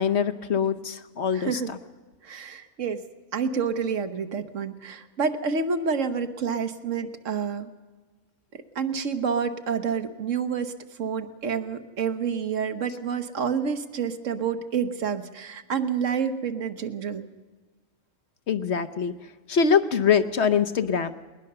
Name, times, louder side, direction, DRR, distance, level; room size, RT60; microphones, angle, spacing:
voice 1, 0.0-1.6 18.5-19.1 19.5-21.1, left 7 dB, 60° left, 11 dB, 1.0 m, -23 dB
voice 2, 1.3-1.7 2.2-3.0 3.3-7.7 8.5-10.7 11.0-17.3, right 6 dB, 70° right, 9 dB, 1.4 m, -28 dB
20.5 x 20.0 x 6.8 m, 1.3 s
omnidirectional pair, 1.4 m